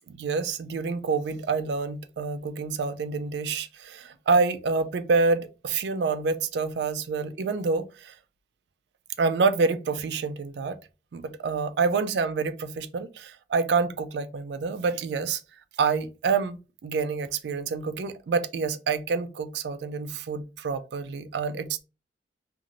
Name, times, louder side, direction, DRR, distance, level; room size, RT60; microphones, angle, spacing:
voice 1, 0.1-8.1 9.2-10.8 11.1-15.4 15.8-21.8, right 4 dB, 75° right, 0.4 m, -27 dB
2.6 x 2.5 x 2.9 m
head